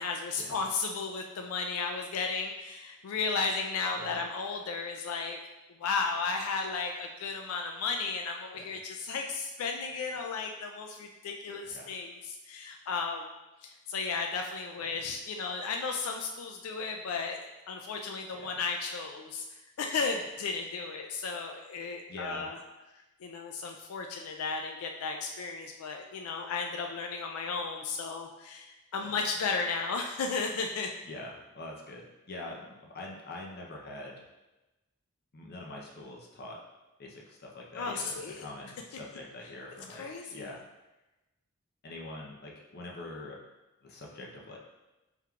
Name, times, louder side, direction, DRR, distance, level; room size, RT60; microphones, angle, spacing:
voice 1, 0.0-5.4 5.8-13.3 13.6-17.4 17.7-22.6 23.2-30.9 37.7-38.4 39.9-40.5, left 4 dB, 90° left, 3 dB, 0.4 m, -34 dB
voice 2, 22.1-22.5 29.1-29.2 31.0-34.3 35.3-36.6 37.0-40.6 41.8-43.4 43.8-44.6, left 2 dB, 50° left, -1 dB, 0.7 m, -44 dB
4.5 x 3.6 x 2.3 m, 1.0 s
head